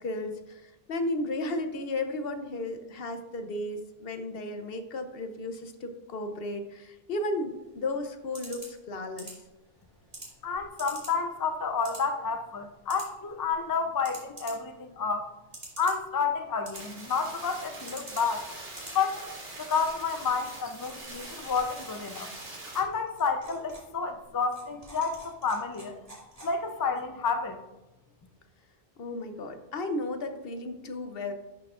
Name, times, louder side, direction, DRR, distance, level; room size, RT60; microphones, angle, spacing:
voice 1, 0.0-9.4 29.0-31.3, left 2 dB, 70° left, 7 dB, 0.9 m, -34 dB
sound 1, 7.5-26.9, right 1 dB, 35° right, 2.4 m, -50 dB
voice 2, 10.4-15.3 15.8-18.4 18.9-19.2 19.6-22.3 22.7-26.0 26.4-27.6, left 5 dB, 30° left, 7 dB, 0.4 m, -30 dB
sound 2, 16.7-22.8, right 2 dB, 65° right, 1.8 m, -43 dB
11.0 x 5.9 x 2.4 m, 0.97 s
omnidirectional pair, 1.0 m